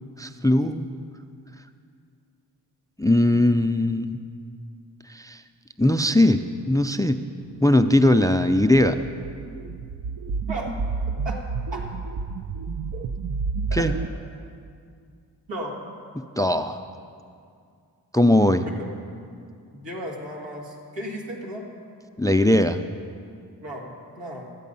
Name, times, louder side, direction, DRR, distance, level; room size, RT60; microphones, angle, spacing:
voice 1, 0.2-0.9 3.0-4.2 5.1-5.4 5.8-6.4 6.7-7.2 7.6-9.0 13.7-13.9 16.4-16.8 18.1-18.7 22.2-22.8, left 1 dB, 10° left, 9 dB, 0.4 m, -19 dB
sound 1, 8.6-14.1, right 4 dB, 50° right, 0.6 m, -30 dB
voice 2, 19.7-21.7 23.6-24.5, equal, 85° right, -1 dB, 2.1 m, -35 dB
13.0 x 8.4 x 5.4 m, 2.3 s
cardioid pair, 50°, 43 cm